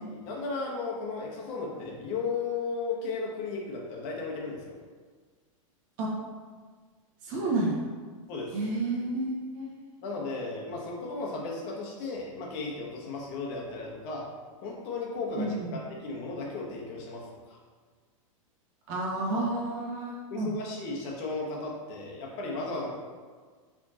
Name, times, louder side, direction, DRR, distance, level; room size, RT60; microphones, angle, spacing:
voice 1, 0.0-4.8 7.3-7.5 8.3-8.6 10.0-14.2 14.6-17.6 20.3-23.0, left 3 dB, 50° left, -2 dB, 1.1 m, -35 dB
voice 2, 7.2-7.8 8.5-9.7 15.4-15.7 18.9-20.5, right 2 dB, 50° right, -3 dB, 1.4 m, -30 dB
4.7 x 3.6 x 2.8 m, 1.5 s
hypercardioid pair, 120°, 18 cm